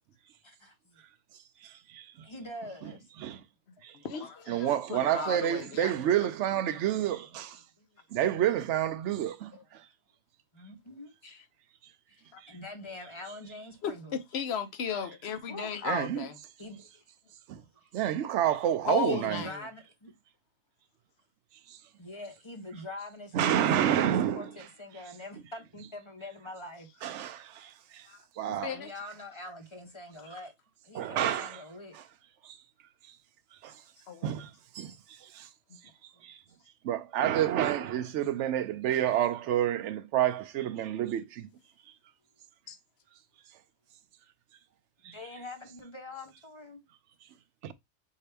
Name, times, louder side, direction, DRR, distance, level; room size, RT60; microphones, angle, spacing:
voice 1, 0.4-1.0 2.2-3.1 4.5-4.7 7.8-8.0 10.5-11.1 12.1-14.2 15.5-15.9 16.6-17.0 19.0-20.1 22.0-26.9 28.7-30.5 30.8-32.0 36.6-36.7 45.0-46.8, left 1 dB, 25° left, 1.0 m, -44 dB
voice 2, 1.6-2.3 2.8-2.9 3.2-3.4 3.8-4.0 4.5-7.6 8.1-9.9 12.4-12.6 15.8-16.3 17.5-17.6 17.9-19.5 21.7-21.8 23.3-24.5 27.0-28.1 28.4-28.8 30.9-31.6 31.9-32.0 32.4-32.6 33.0-33.2 33.5-33.8 34.2-35.5 36.0-36.4 36.8-41.5 45.0-45.2 47.6-47.7, right 11 dB, 85° right, 0.9 m, -29 dB
voice 3, 3.9-5.9 11.2-11.4 12.3-12.4 13.8-16.4 18.9-19.7 28.1-28.2 28.6-28.9 30.2-30.3 34.1-34.3 35.7-35.8 42.7-42.8, left 7 dB, 65° left, 1.0 m, -35 dB
5.4 x 2.8 x 3.3 m
omnidirectional pair, 1.2 m